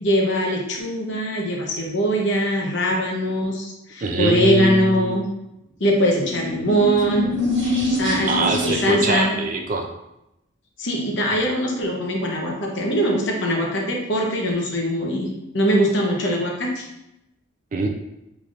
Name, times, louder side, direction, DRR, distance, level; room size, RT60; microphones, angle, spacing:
voice 1, 0.0-5.2 5.8-7.3 7.8-9.3 10.8-15.3 15.5-16.9, equal, 60° left, 0 dB, 0.8 m, -22 dB
voice 2, 4.0-5.3 8.3-9.9 17.7-17.9, right 2 dB, 40° right, 3 dB, 0.3 m, -23 dB
sound 1, 6.2-9.2, left 2 dB, 60° right, 1.1 m, -25 dB
4.0 x 3.2 x 2.4 m, 0.87 s
head